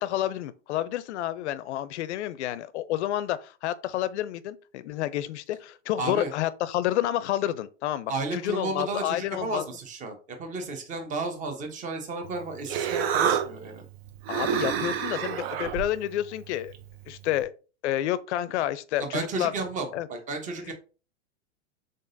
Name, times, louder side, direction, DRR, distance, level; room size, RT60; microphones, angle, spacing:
voice 1, 0.0-9.6 14.3-16.7 17.1-17.5 17.8-19.5 19.9-20.1, left 13 dB, 70° left, 0.5 m, -29 dB
voice 2, 6.0-6.3 8.1-13.9 19.0-20.7, right 3 dB, 20° right, 0.8 m, -33 dB
Human voice, 12.2-17.4, right 8 dB, 55° right, 0.7 m, -30 dB
3.9 x 3.7 x 2.6 m
hypercardioid pair, 125°, 36 cm